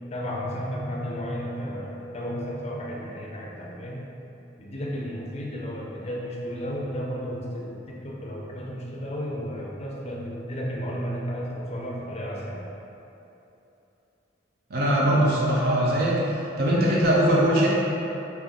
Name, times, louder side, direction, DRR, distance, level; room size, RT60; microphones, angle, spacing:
voice 1, 0.1-4.0 4.6-12.7, equal, 35° left, -3 dB, 0.5 m, -33 dB
voice 2, 14.7-16.2 16.6-17.7, right 1 dB, 50° right, -5 dB, 0.5 m, -21 dB
3.6 x 2.7 x 3.9 m, 3.0 s
head